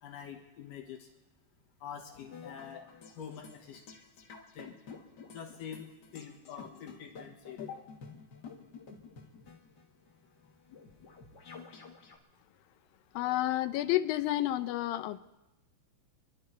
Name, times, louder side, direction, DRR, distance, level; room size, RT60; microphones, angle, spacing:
voice 1, 0.0-1.1 1.8-2.9 3.2-3.8 4.5-4.7 5.3-7.8, left 8 dB, 75° left, 0 dB, 3.1 m, -45 dB
sound 1, 2.1-12.2, left 5 dB, 55° left, 1.2 m, -51 dB
voice 2, 13.1-15.2, left 15 dB, 90° left, 10 dB, 2.5 m, -30 dB
26.5 x 11.5 x 4.4 m, 1.0 s
omnidirectional pair, 4.0 m